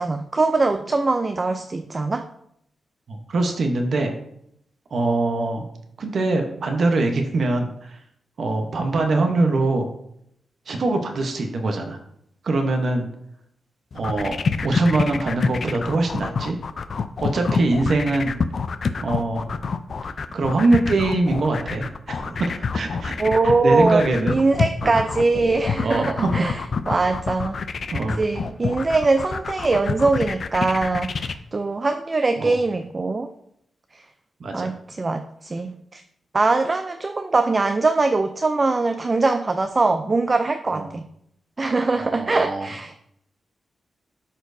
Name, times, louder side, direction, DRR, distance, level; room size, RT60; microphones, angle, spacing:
voice 1, 0.0-2.3 23.2-27.6 28.2-33.3 33.9-34.0 34.5-36.0 36.3-41.0 41.6-43.1, right 3 dB, 30° right, 7 dB, 0.4 m, -22 dB
voice 2, 3.1-4.1 4.9-5.6 6.0-8.0 8.4-9.9 10.7-12.0 12.4-13.0 13.9-16.6 17.2-18.3 19.0-19.5 20.3-23.1 23.6-24.3 24.8-24.9 25.8-26.3 27.9-28.2 32.4-32.6 34.4-34.7 40.7-40.9 42.0-42.7, right 2 dB, 60° right, 4 dB, 0.9 m, -23 dB
sound 1, 13.9-31.3, left 5 dB, 50° left, 0.4 m, -26 dB
12.5 x 4.4 x 2.6 m, 0.74 s
wide cardioid pair, 125°, 0 cm